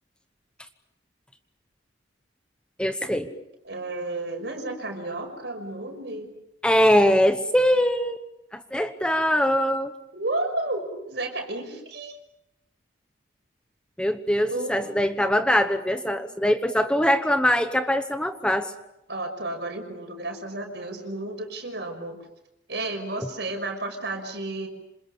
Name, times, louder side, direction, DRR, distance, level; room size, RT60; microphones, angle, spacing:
voice 1, 2.8-3.3 6.6-8.2 8.5-9.9 14.0-18.7, equal, 5° left, 8 dB, 1.0 m, -22 dB
voice 2, 3.6-6.3 10.1-12.2 14.5-15.0 16.1-16.2 19.1-22.2 22.7-24.7, right 2 dB, 65° right, 5 dB, 5.9 m, -32 dB
27.5 x 27.0 x 7.1 m, 0.84 s
head